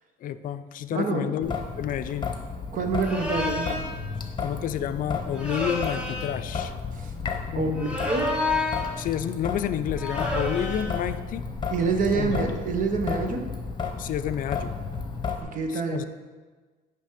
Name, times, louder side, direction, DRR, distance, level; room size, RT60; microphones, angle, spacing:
voice 1, 0.2-2.3 4.4-6.7 7.5-8.0 9.0-11.4 12.1-12.5 14.0-14.7 15.7-16.0, left 10 dB, 55° left, 11 dB, 0.4 m, -30 dB
voice 2, 0.9-1.4 2.7-3.8 6.9-7.1 7.6-8.4 11.7-13.4 15.5-16.1, right 4 dB, 50° right, 4 dB, 0.9 m, -27 dB
Traffic noise roadway noise / Drip / Trickle dribble, 1.4-15.4, left 5 dB, 25° left, 0.9 m, -33 dB
sound 1, 3.0-3.9 5.3-6.4 7.7-9.0 10.0-11.0, left 2 dB, 5° right, 1.2 m, -29 dB
9.8 x 3.4 x 5.0 m, 1.4 s
cardioid pair, 110°, 17 cm